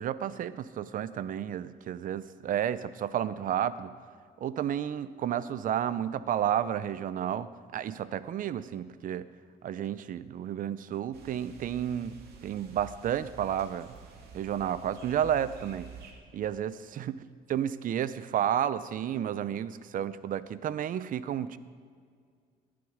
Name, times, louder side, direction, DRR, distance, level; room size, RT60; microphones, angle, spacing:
voice 1, 0.0-3.9 4.4-9.3 9.6-13.9 14.3-15.9 16.3-17.2 17.5-21.6, right 10 dB, 55° right, 15 dB, 0.7 m, -31 dB
sound 1, 11.1-16.1, right 6 dB, 70° right, 2.3 m, -49 dB
19.5 x 11.5 x 5.1 m, 2.1 s
cardioid pair, 110°, 17 cm